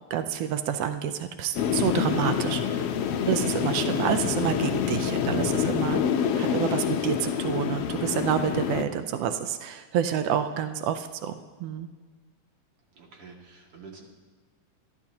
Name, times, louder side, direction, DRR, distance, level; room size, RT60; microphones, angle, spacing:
voice 1, 0.1-2.8 3.3-6.0 6.4-11.9, right 9 dB, 85° right, 8 dB, 1.4 m, -28 dB
sound 1, 1.5-8.8, left 8 dB, 70° left, 1.4 m, -27 dB
voice 2, 12.9-14.0, right 4 dB, 45° right, -1 dB, 3.0 m, -47 dB
27.0 x 12.0 x 2.9 m, 1.5 s
omnidirectional pair, 3.6 m